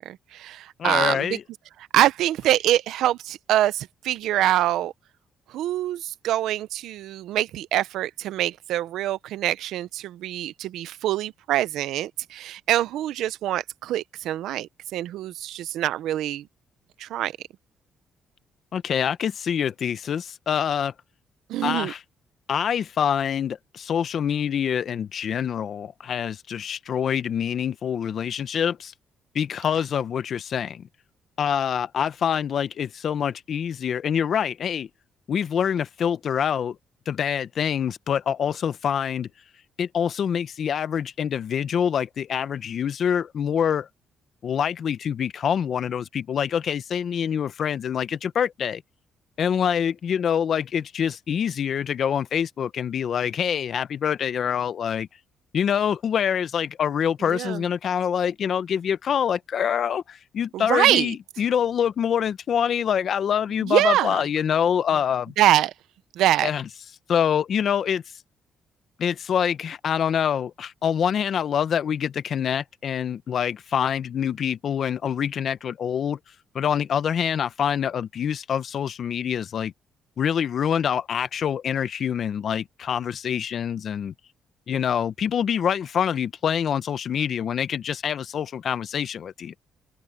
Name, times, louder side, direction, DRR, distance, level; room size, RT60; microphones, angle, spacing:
voice 1, 0.0-1.4 1.9-4.9 5.5-16.5 17.0-17.3 21.5-21.9 57.2-57.6 60.5-61.1 63.6-64.2 65.4-65.7 66.1-66.5, right 13 dB, 85° right, 0.8 m, -24 dB
voice 2, 0.8-1.4 18.7-20.9 21.6-22.0 22.5-28.9 29.3-30.9 31.4-34.9 35.3-36.8 37.1-39.3 39.8-43.9 44.4-48.8 49.4-55.1 55.5-65.3 66.4-66.6 67.1-68.0 69.0-76.2 76.5-79.7 80.2-84.1 84.7-89.5, left 8 dB, 60° left, 1.0 m, -25 dB
cardioid pair, 90°, 0 cm